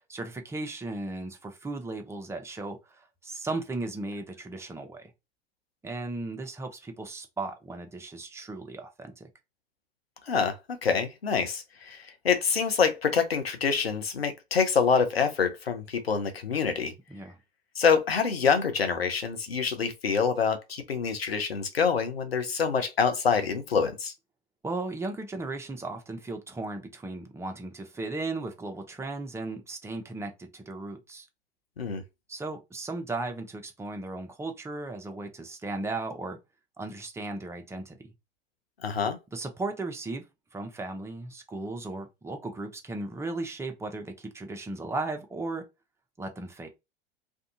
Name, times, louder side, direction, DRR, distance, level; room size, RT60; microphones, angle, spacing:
voice 1, 0.1-5.1 5.8-9.3 17.1-17.4 24.6-31.3 32.3-36.4 36.8-38.0 39.3-40.2 40.5-45.6 46.2-46.7, right 2 dB, 10° right, 0.6 m, -36 dB
voice 2, 10.3-16.9 17.7-24.1 31.8-32.0 38.8-39.2, left 6 dB, 90° left, 0.7 m, -26 dB
2.6 x 2.3 x 2.7 m
figure-of-eight pair, 85°, 29 cm